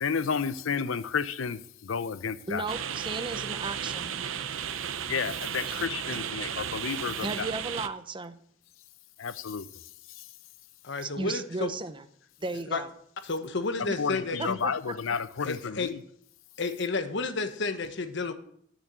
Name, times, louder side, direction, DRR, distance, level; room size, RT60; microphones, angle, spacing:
voice 1, 0.0-2.7 5.1-7.5 9.2-9.7 14.0-16.0, left 6 dB, 90° left, 0.6 m, -31 dB
voice 2, 2.5-4.1 5.7-5.8 7.2-8.4 11.0-12.0 12.4-12.9 13.9-14.0 14.4-15.0, right 3 dB, 25° right, 0.7 m, -35 dB
sound 1, 2.7-7.9, right 8 dB, 80° right, 0.7 m, -34 dB
voice 3, 10.8-11.7 12.7-12.8 13.2-14.6 15.4-15.9 16.6-18.3, left 3 dB, 65° left, 1.1 m, -31 dB
10.5 x 7.1 x 7.6 m
head